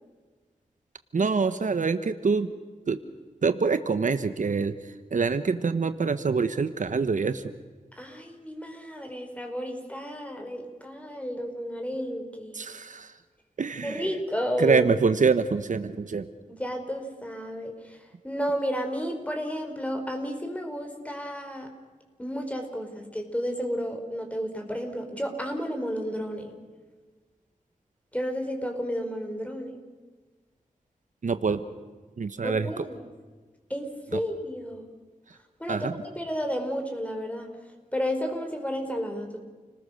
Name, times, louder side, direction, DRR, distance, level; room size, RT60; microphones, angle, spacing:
voice 1, 1.1-2.5 2.9-3.0 3.4-7.5 12.5-13.1 13.6-14.1 14.6-16.3 31.2-31.6 32.2-32.8 34.1-34.2 35.3-35.4 35.7-35.9, right 5 dB, 65° right, 11 dB, 1.2 m, -25 dB
voice 2, 7.9-12.6 13.8-14.9 16.5-18.0 18.2-21.7 22.2-26.5 28.1-29.8 32.4-33.0 33.7-34.9 35.6-37.5 37.9-39.4, equal, 10° left, 4 dB, 5.0 m, -32 dB
30.0 x 20.0 x 6.6 m, 1.4 s
wide cardioid pair, 80°, 14 cm